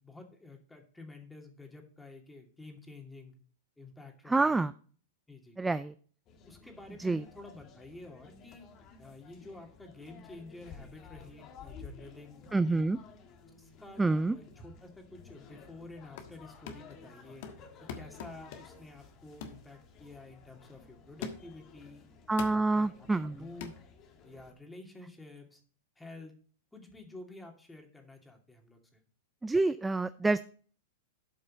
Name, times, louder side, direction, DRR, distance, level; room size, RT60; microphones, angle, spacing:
voice 1, 0.0-3.3 3.8-4.6 5.3-5.6 6.5-8.7 9.0-12.9 13.6-17.7 17.9-22.1 22.5-23.7 24.2-25.6 26.0-26.3 26.7-29.0, left 2 dB, 5° left, 2 dB, 2.6 m, -50 dB
voice 2, 4.3-4.7 5.6-5.9 7.0-7.2 12.5-13.0 14.0-14.3 22.3-23.4 29.4-30.4, right 3 dB, 10° right, 14 dB, 0.4 m, -27 dB
sound 1, 6.3-24.5, left 5 dB, 40° left, 1.7 m, -54 dB
sound 2, 15.9-16.4 16.7-17.0 17.4-18.9 19.4-19.7 20.1-20.3 21.2-21.6 22.4-22.7 23.6-23.8, left 6 dB, 60° left, 1.4 m, -43 dB
12.5 x 5.4 x 4.2 m, 0.42 s
hypercardioid pair, 105°, 0 cm